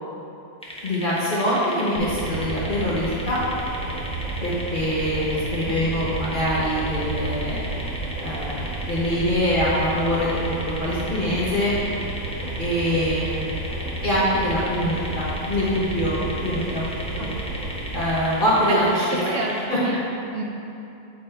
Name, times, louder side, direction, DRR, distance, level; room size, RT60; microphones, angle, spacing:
sound 1, 0.6-19.7, equal, 5° left, 0.5 m, -37 dB
voice 1, 0.8-3.4 4.4-7.6 8.2-8.6 8.9-11.7 12.6-13.3 14.0-16.9 17.2-17.3 17.9-19.0 19.7-19.8, equal, 40° left, -9 dB, 1.1 m, -24 dB
sound 2, 2.0-18.1, right 2 dB, 85° right, 1.8 m, -32 dB
voice 2, 5.6-6.0 17.2-17.3 19.1-20.0 20.3-20.4, right 2 dB, 65° right, -1 dB, 1.3 m, -29 dB
8.5 x 4.2 x 4.4 m, 2.8 s
omnidirectional pair, 1.4 m